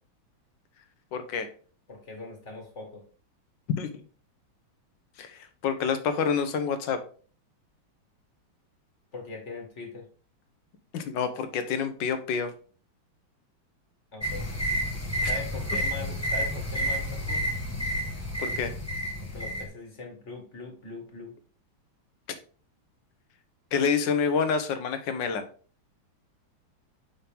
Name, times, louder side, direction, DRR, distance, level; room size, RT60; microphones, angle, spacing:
voice 1, 1.1-1.5 3.8-4.0 5.2-7.0 10.9-12.5 15.2-15.3 18.4-18.7 23.7-25.4, left 6 dB, 65° left, 9 dB, 1.4 m, -28 dB
voice 2, 1.9-3.0 9.1-10.1 14.1-14.5 15.2-17.5 19.2-21.3, left 3 dB, 35° left, 1 dB, 1.7 m, -41 dB
sound 1, 14.2-19.6, equal, 10° left, 0.7 m, -30 dB
5.8 x 5.6 x 3.5 m, 0.40 s
omnidirectional pair, 2.3 m